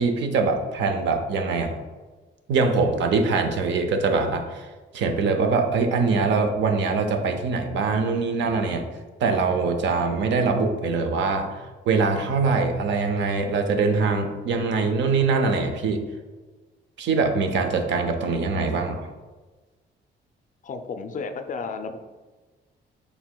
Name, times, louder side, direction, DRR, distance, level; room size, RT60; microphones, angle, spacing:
voice 1, 0.0-1.8 2.5-4.7 4.9-8.9 9.2-16.0 17.0-19.1, right 4 dB, 70° right, 6 dB, 0.5 m, -23 dB
voice 2, 20.6-22.0, left 4 dB, 40° left, 7 dB, 0.4 m, -32 dB
4.6 x 3.3 x 2.2 m, 1.3 s
cardioid pair, 90°, 20 cm